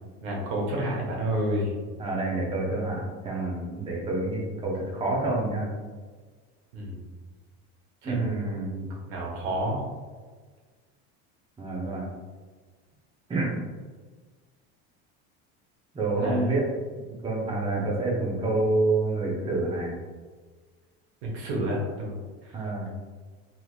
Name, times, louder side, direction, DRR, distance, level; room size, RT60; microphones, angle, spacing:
voice 1, 0.2-1.8 6.7-7.0 8.0-8.4 9.1-9.8 16.2-16.5 21.2-22.2 22.4-22.5, equal, 85° right, -3 dB, 1.1 m, -29 dB
voice 2, 2.0-5.7 8.0-8.9 11.6-12.1 13.3-13.6 15.9-16.6 17.2-19.9 22.5-22.9, right 2 dB, 15° right, -3 dB, 0.8 m, -28 dB
3.4 x 2.8 x 2.4 m, 1.4 s
supercardioid pair, 110°, 32 cm